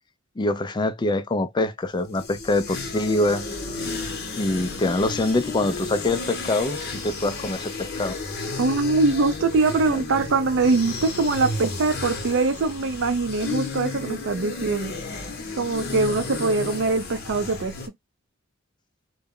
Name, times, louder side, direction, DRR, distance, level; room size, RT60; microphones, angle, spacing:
voice 1, 0.4-3.5 4.4-8.2, left 2 dB, 20° left, 0.4 m, -24 dB
sound 1, 1.9-17.9, left 3 dB, 55° left, 0.8 m, -33 dB
voice 2, 8.6-14.9 15.6-17.8, right 3 dB, 65° right, 0.5 m, -23 dB
2.2 x 2.0 x 3.6 m
head